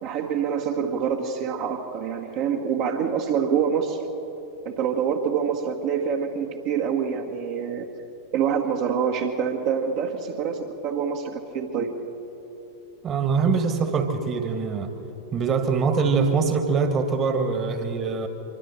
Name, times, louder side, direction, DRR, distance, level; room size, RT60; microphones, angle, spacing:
voice 1, 0.0-4.0 4.6-7.9 8.3-12.0, right 7 dB, 45° right, 0 dB, 1.7 m, -26 dB
voice 2, 13.0-14.9 15.3-18.3, right 5 dB, 30° right, 6 dB, 1.9 m, -23 dB
25.0 x 24.5 x 4.4 m, 2.9 s
figure-of-eight pair, 90°, 0 cm